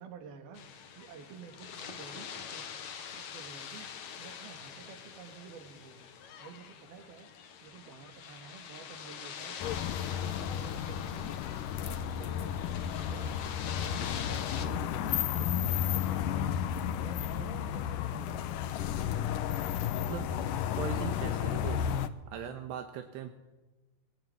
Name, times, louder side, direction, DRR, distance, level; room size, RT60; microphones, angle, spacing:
voice 1, 0.0-7.3 7.6-12.6 12.9-13.4 13.7-18.8 20.3-20.6, right 6 dB, 65° right, 6 dB, 4.3 m, -51 dB
sound 1, 0.5-14.7, left 7 dB, 50° left, 2.6 m, -45 dB
sound 2, 9.6-22.1, left 9 dB, 70° left, 2.1 m, -33 dB
voice 2, 20.0-20.3 20.8-21.8 22.3-23.3, right 9 dB, 80° right, 6 dB, 3.5 m, -39 dB
24.0 x 19.0 x 9.5 m, 1.1 s
omnidirectional pair, 4.9 m